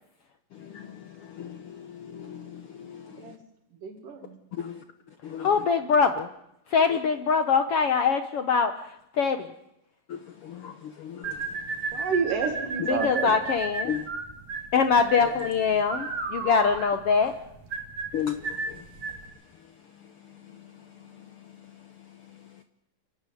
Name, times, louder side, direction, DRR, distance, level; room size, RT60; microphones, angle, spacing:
voice 1, 0.5-3.2 4.6-4.8 5.2-5.5 10.1-11.4 12.8-12.9 13.8-14.1 15.2-15.3 18.1-18.8, left 9 dB, 90° left, 8 dB, 1.2 m, -36 dB
voice 2, 3.8-4.4 11.9-13.4 15.9-16.0, right 5 dB, 70° right, 6 dB, 3.6 m, -29 dB
voice 3, 5.4-6.3 6.7-8.7 9.2-9.4 12.9-13.9 14.7-17.3, left 5 dB, 70° left, 8 dB, 1.4 m, -23 dB
sound 1, 11.2-19.3, right 4 dB, 35° right, 3.5 m, -33 dB
29.5 x 12.0 x 9.2 m, 0.84 s
omnidirectional pair, 4.0 m